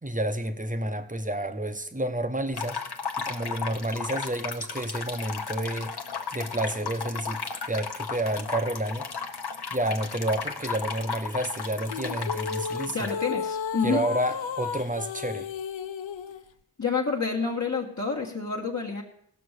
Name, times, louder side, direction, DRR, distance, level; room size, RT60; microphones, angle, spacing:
voice 1, 0.0-2.8 3.2-5.9 6.3-9.1 9.7-13.1 13.8-15.5, right 1 dB, 15° right, 7 dB, 1.0 m, -30 dB
sound 1, 2.5-13.1, left 5 dB, 50° left, 1.2 m, -35 dB
sound 2, 11.9-16.4, left 6 dB, 70° left, 0.7 m, -33 dB
voice 2, 12.9-14.0 16.8-19.0, left 4 dB, 35° left, -3 dB, 1.5 m, -28 dB
16.0 x 6.1 x 6.5 m, 0.71 s
cardioid pair, 55°, 48 cm